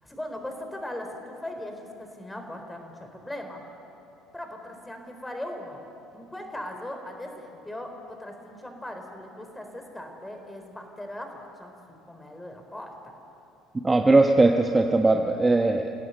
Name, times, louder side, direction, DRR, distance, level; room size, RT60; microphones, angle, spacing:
voice 1, 0.0-3.6 4.3-5.8 6.1-11.7 12.1-12.9, left 1 dB, 10° left, 4 dB, 4.0 m, -39 dB
voice 2, 13.8-15.9, right 2 dB, 20° right, 4 dB, 1.1 m, -19 dB
29.5 x 17.0 x 6.6 m, 2.9 s
figure-of-eight pair, 60°, 0 cm